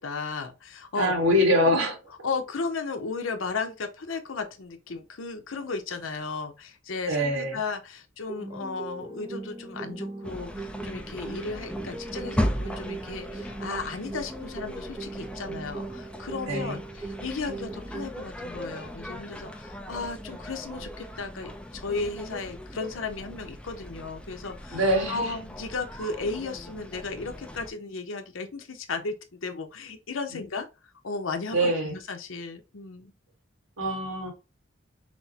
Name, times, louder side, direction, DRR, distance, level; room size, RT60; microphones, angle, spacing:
voice 1, 0.0-1.1 1.7-1.8 2.2-24.8 25.1-30.7 31.0-33.1, left 4 dB, 75° left, 0.8 m, -35 dB
voice 2, 0.9-2.0 7.1-7.6 16.5-16.8 24.7-25.3 30.3-30.5 31.5-32.0 33.8-34.3, equal, 90° right, 1.6 m, -24 dB
sound 1, 8.3-18.3, right 3 dB, 20° right, 0.9 m, -39 dB
sound 2, 10.2-27.7, equal, 5° left, 0.6 m, -37 dB
6.0 x 2.1 x 2.9 m
head